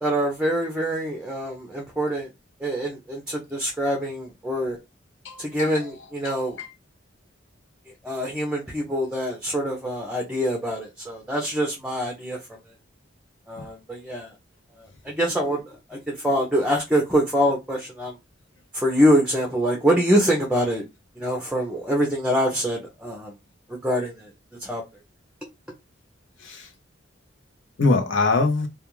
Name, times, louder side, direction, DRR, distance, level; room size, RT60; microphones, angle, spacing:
voice 1, 0.0-2.3 2.6-4.8 5.4-6.6 8.0-12.4 13.5-14.3 15.0-18.1 18.7-20.8 21.2-23.3 23.7-24.3 24.6-24.8, equal, 5° right, 0.5 m, -24 dB
voice 2, 5.2-5.9 6.2-6.7 26.4-26.7 27.8-28.7, left 3 dB, 75° left, 0.7 m, -24 dB
2.3 x 2.3 x 3.0 m
head